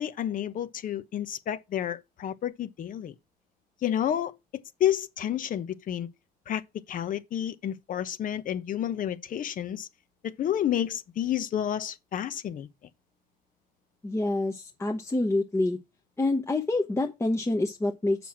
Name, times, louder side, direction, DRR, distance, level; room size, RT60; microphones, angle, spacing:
voice 1, 0.0-3.1 3.8-4.3 4.8-6.1 6.5-6.6 6.9-9.9 10.2-12.7, left 10 dB, 55° left, 1.0 m, -30 dB
voice 2, 14.0-15.8 16.2-18.3, left 2 dB, 15° left, 1.0 m, -27 dB
7.0 x 6.1 x 5.8 m
cardioid pair, 110°, 17 cm